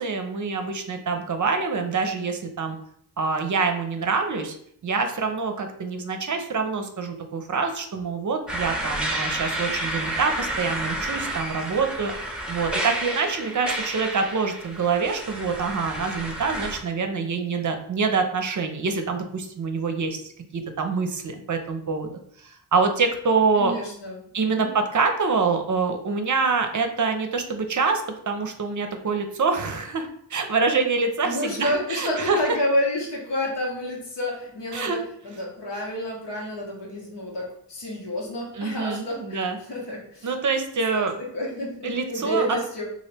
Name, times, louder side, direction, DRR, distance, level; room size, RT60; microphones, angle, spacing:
voice 1, 0.0-2.8 3.2-4.5 4.8-12.1 12.5-20.2 20.5-22.1 22.4-23.7 24.3-32.4 34.7-35.0 38.5-39.6 40.2-41.1 41.8-42.4, right 4 dB, 45° right, 5 dB, 0.6 m, -25 dB
sound 1, 8.5-16.8, right 1 dB, ahead, 0.7 m, -30 dB
voice 2, 23.5-24.7 31.2-40.3 40.9-42.8, left 1 dB, 75° left, -3 dB, 1.2 m, -29 dB
2.8 x 2.5 x 3.3 m, 0.66 s
cardioid pair, 40°, 42 cm